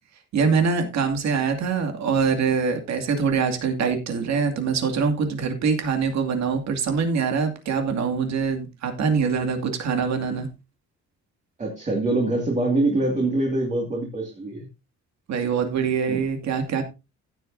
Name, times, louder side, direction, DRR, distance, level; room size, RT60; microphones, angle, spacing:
voice 1, 0.3-10.5 15.3-16.8, right 5 dB, 65° right, 5 dB, 2.5 m, -24 dB
voice 2, 11.6-14.7 16.1-16.2, right 2 dB, 25° right, 0 dB, 2.3 m, -24 dB
16.0 x 8.1 x 2.7 m, 0.26 s
cardioid pair, 175°, 29 cm